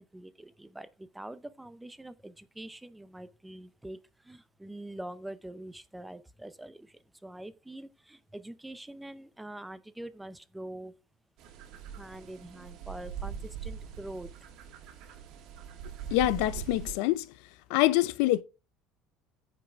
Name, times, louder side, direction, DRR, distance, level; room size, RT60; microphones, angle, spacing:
voice 1, 0.0-4.0 4.2-10.9 12.0-14.3, right 1 dB, 5° right, 0.5 m, -44 dB
sound 1, 11.4-16.9, right 7 dB, 55° right, 1.9 m, -42 dB
voice 2, 16.1-17.3 17.7-18.4, left 16 dB, 80° left, 0.4 m, -25 dB
14.5 x 5.4 x 2.4 m
cardioid pair, 150°, 0 cm